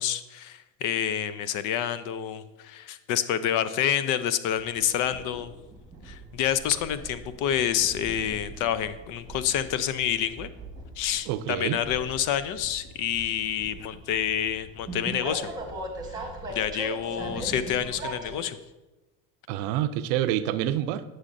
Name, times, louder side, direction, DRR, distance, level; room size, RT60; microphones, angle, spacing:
voice 1, 0.0-5.5 6.0-10.5 11.0-15.5 16.1-18.6, left 10 dB, 55° left, 14 dB, 0.5 m, -28 dB
Train, 4.6-18.4, right 2 dB, 10° right, 1.3 m, -40 dB
voice 2, 11.3-11.8 19.5-21.0, right 12 dB, 70° right, 12 dB, 0.5 m, -27 dB
9.6 x 6.3 x 2.6 m, 1.1 s
supercardioid pair, 100°, 37 cm